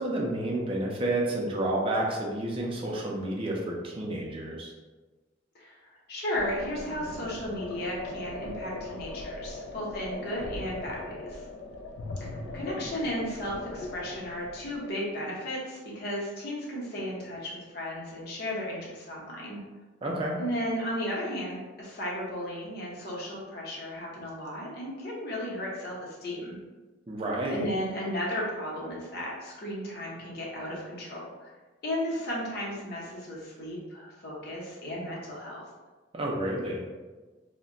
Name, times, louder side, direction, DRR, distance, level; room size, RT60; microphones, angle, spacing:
voice 1, 0.0-4.7 20.0-20.4 27.1-27.7 36.1-36.8, right 1 dB, 30° right, -1 dB, 0.4 m, -30 dB
voice 2, 5.5-11.5 12.2-19.6 20.4-26.6 27.5-31.5 31.8-35.6, equal, 55° left, -4 dB, 0.8 m, -34 dB
sound 1, 6.4-14.9, left 2 dB, 80° left, 0.3 m, -40 dB
2.2 x 2.1 x 3.7 m, 1.3 s
head